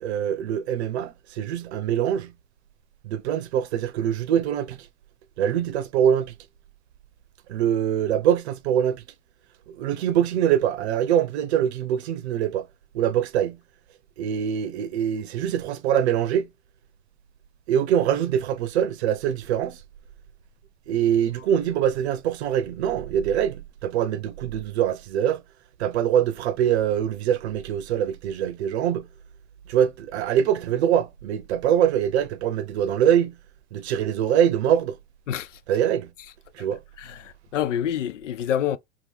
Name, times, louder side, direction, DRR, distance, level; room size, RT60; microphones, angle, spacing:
voice 1, 0.0-2.3 3.0-4.8 5.4-6.3 7.5-9.0 9.7-12.7 12.9-13.6 14.2-16.5 17.7-19.8 20.9-25.4 25.8-29.1 29.7-33.3 33.7-35.0 35.7-36.1 36.5-36.8, right 9 dB, 60° right, 0.6 m, -23 dB
voice 2, 37.0-38.8, left 10 dB, 80° left, 0.5 m, -27 dB
2.8 x 2.4 x 3.3 m
hypercardioid pair, 105°, 36 cm